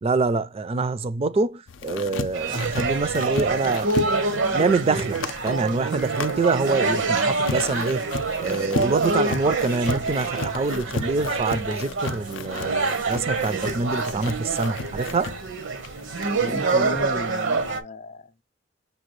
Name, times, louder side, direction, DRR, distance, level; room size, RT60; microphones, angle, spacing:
voice 1, 0.0-3.9 4.5-8.1 8.4-15.4, right 3 dB, 30° right, 0.4 m, -25 dB
sound 1, 1.7-16.8, left 4 dB, 90° left, 0.5 m, -34 dB
sound 2, 2.3-17.8, right 3 dB, 75° right, 0.8 m, -26 dB
voice 2, 16.4-18.4, left 2 dB, 35° left, 0.5 m, -34 dB
6.7 x 2.3 x 3.0 m
head